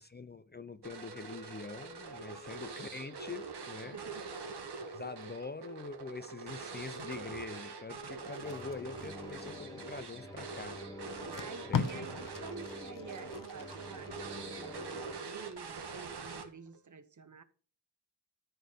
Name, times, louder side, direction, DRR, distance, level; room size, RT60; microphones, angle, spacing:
voice 1, 0.0-4.0 4.8-10.8 11.7-12.0, left 4 dB, 25° left, 0.5 m, -44 dB
sound 1, 0.8-16.8, right 4 dB, 70° right, 1.8 m, -44 dB
voice 2, 3.8-4.3 11.3-17.4, right 5 dB, 45° right, 1.1 m, -49 dB
Packing tape duct tape, 8.3-10.0 10.7-10.8 11.1-14.1 14.5-14.8, left 6 dB, 50° left, 0.9 m, -39 dB
sound 2, 8.4-15.1, left 1 dB, 10° left, 2.2 m, -48 dB
13.0 x 4.4 x 6.7 m
wide cardioid pair, 125°, 41 cm